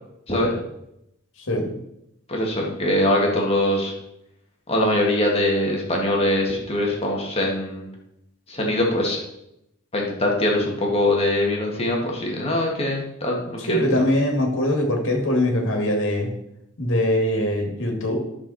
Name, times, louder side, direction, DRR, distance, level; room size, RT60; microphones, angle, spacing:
voice 1, 2.3-3.9 4.7-7.8 8.5-9.2 9.9-14.0, left 1 dB, 30° left, -1 dB, 2.1 m, -22 dB
voice 2, 13.6-16.3 16.8-18.2, left 1 dB, 60° left, 1 dB, 2.3 m, -22 dB
11.0 x 6.7 x 4.3 m, 0.82 s
head